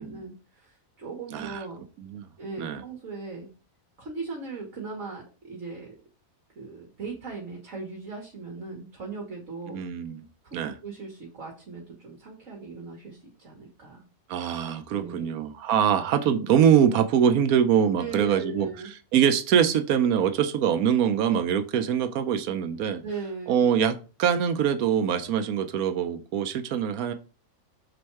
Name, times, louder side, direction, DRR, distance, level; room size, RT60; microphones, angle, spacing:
voice 1, 0.0-1.8 2.4-3.5 4.0-5.9 6.5-9.8 10.4-10.5 10.8-14.1 14.9-15.3 18.0-18.9 23.0-23.6, right 4 dB, 60° right, 1 dB, 1.8 m, -38 dB
voice 2, 1.3-1.6 2.0-2.3 2.6-2.8 9.7-10.3 10.5-10.7 14.3-18.7 19.1-23.0 23.5-27.1, right 8 dB, 85° right, 9 dB, 1.2 m, -23 dB
6.5 x 4.3 x 4.6 m, 0.34 s
omnidirectional pair, 1.5 m